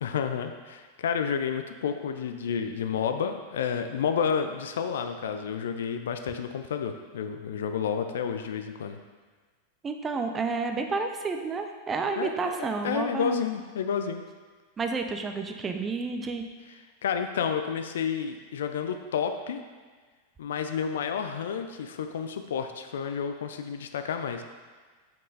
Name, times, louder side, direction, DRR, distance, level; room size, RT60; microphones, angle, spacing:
voice 1, 0.0-9.0 12.2-14.2 17.0-19.6 20.4-24.4, left 7 dB, 60° left, 7 dB, 0.4 m, -30 dB
voice 2, 9.8-13.3 14.8-16.4, right 4 dB, 20° right, 5 dB, 0.5 m, -30 dB
5.3 x 5.3 x 3.9 m, 1.4 s
figure-of-eight pair, 90°, 0 cm